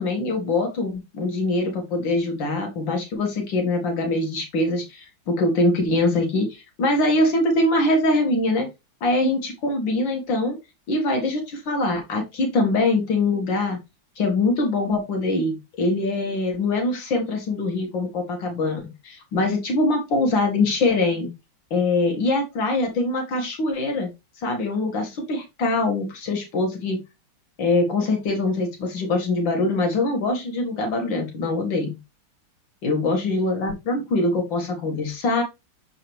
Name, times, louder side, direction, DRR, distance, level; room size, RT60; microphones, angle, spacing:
voice 1, 0.0-8.7 9.0-10.6 10.9-13.8 14.2-21.3 21.7-24.1 24.4-27.0 27.6-32.0 32.8-35.4, left 2 dB, 70° left, 2 dB, 2.5 m, -23 dB
7.1 x 4.8 x 3.0 m, 0.23 s
omnidirectional pair, 2.2 m